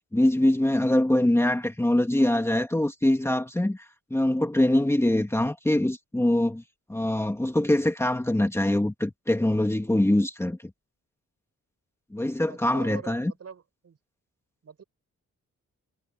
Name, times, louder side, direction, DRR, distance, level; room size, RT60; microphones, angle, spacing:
voice 1, 0.1-3.9 4.1-6.6 6.9-10.6 12.1-13.3, left 1 dB, 10° left, 1.9 m, -23 dB
voice 2, 12.5-14.0 14.6-14.8, right 6 dB, 55° right, 7.2 m, -44 dB
wide cardioid pair, 145°, 30 cm